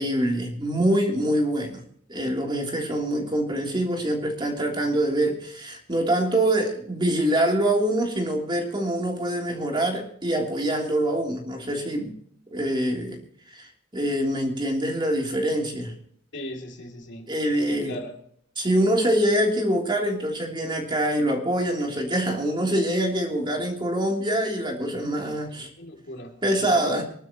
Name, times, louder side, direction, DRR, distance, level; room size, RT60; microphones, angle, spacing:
voice 1, 0.0-1.8 2.1-12.1 12.5-13.2 13.5-13.7 13.9-15.9 17.3-17.9 18.6-25.7 26.4-27.0, right 1 dB, 25° right, 1 dB, 3.3 m, -25 dB
voice 2, 16.3-17.3 17.7-18.2 25.5-26.9, left 1 dB, 60° left, 2 dB, 2.8 m, -39 dB
25.0 x 12.0 x 3.0 m, 0.63 s
head